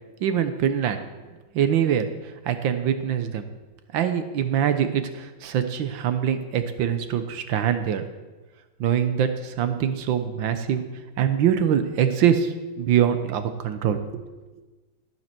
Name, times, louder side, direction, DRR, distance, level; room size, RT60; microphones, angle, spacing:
voice 1, 0.2-1.0 1.5-2.1 2.4-3.4 3.9-8.1 8.8-10.8 11.2-14.2, right 9 dB, 70° right, 9 dB, 1.6 m, -23 dB
14.0 x 7.6 x 6.0 m, 1.2 s
omnidirectional pair, 2.2 m